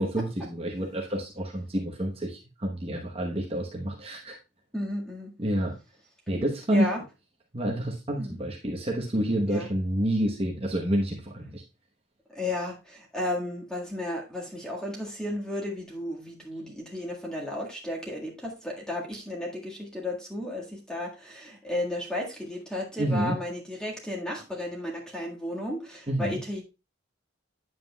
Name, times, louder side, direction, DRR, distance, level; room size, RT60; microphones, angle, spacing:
voice 1, 0.0-4.4 5.4-5.7 6.3-6.9 7.5-11.6 23.0-23.4 26.1-26.4, right 1 dB, 30° right, -1 dB, 1.0 m, -28 dB
voice 2, 4.7-5.3 6.7-7.0 8.2-8.4 9.5-9.7 12.3-26.6, left 1 dB, 5° left, -2 dB, 1.7 m, -34 dB
9.3 x 7.6 x 2.3 m, 0.28 s
head